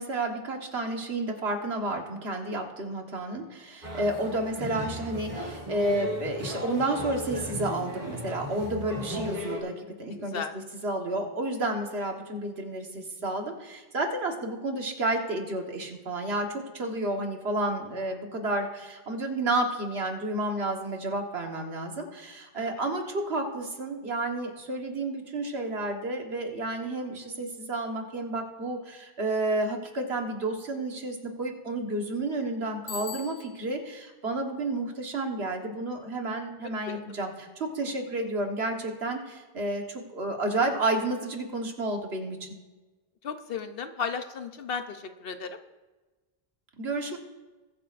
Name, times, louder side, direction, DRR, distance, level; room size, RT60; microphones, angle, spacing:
voice 1, 0.0-10.4 10.8-42.5 46.8-47.2, right 2 dB, 85° right, 2 dB, 1.7 m, -31 dB
sound 1, 3.8-9.6, equal, 45° right, 2.5 m, -36 dB
voice 2, 10.1-10.5 22.5-22.8 36.8-37.0 43.2-45.6, left 6 dB, 65° left, 8 dB, 1.0 m, -35 dB
Bicycle bell, 32.9-33.8, left 7 dB, 50° left, 0.4 m, -40 dB
21.5 x 8.7 x 2.5 m, 1.2 s
omnidirectional pair, 1.0 m